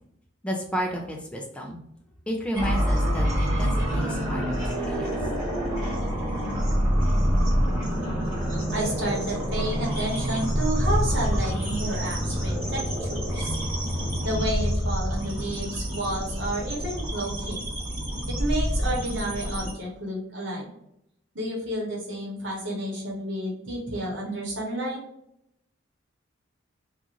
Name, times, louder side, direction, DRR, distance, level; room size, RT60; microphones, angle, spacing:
voice 1, 0.4-1.8 2.3-5.2, equal, 5° left, 0 dB, 0.4 m, -32 dB
sound 1, 2.5-19.7, equal, 20° right, 1.4 m, -26 dB
voice 2, 8.7-13.6 14.2-17.6 18.3-20.7 21.3-25.0, right 1 dB, 65° right, -3 dB, 1.0 m, -31 dB
2.5 x 2.4 x 2.9 m, 0.77 s
head